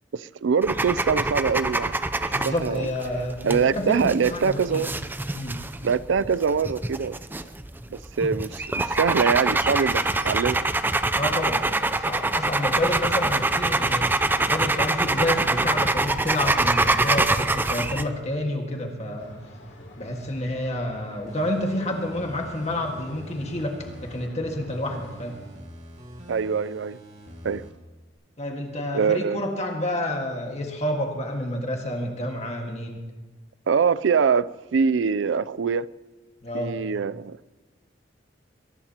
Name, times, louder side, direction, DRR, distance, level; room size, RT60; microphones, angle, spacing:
voice 1, 0.1-2.9 3.4-4.9 5.8-7.2 7.9-10.7 26.3-27.0 27.4-27.7 28.9-29.4 33.7-35.9 36.5-37.4, right 6 dB, 80° right, 0.4 m, -24 dB
sound 1, 0.6-18.1, right 2 dB, 10° right, 0.5 m, -25 dB
voice 2, 2.3-4.8 5.3-5.6 11.1-14.1 14.4-19.3 20.0-25.4 28.4-33.0 36.4-36.7, left 1 dB, 40° left, 1.7 m, -29 dB
sound 2, 19.2-25.4, left 1 dB, 85° left, 3.0 m, -46 dB
sound 3, 21.3-24.3 24.7-27.7 28.1-28.2, equal, 40° right, 2.3 m, -44 dB
22.0 x 19.0 x 2.9 m
head